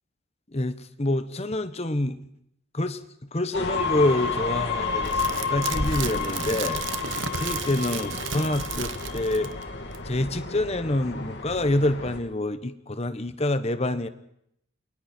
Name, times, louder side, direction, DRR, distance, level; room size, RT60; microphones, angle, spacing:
voice 1, 0.5-2.2 2.7-3.0 3.3-9.5 10.0-14.1, left 1 dB, 30° left, 11 dB, 1.1 m, -27 dB
sound 1, 3.5-12.2, left 4 dB, 55° left, 2.8 m, -30 dB
sound 2, 5.0-9.6 9.9-10.0, right 7 dB, 65° right, 1.1 m, -34 dB
28.5 x 23.0 x 4.5 m, 0.74 s
head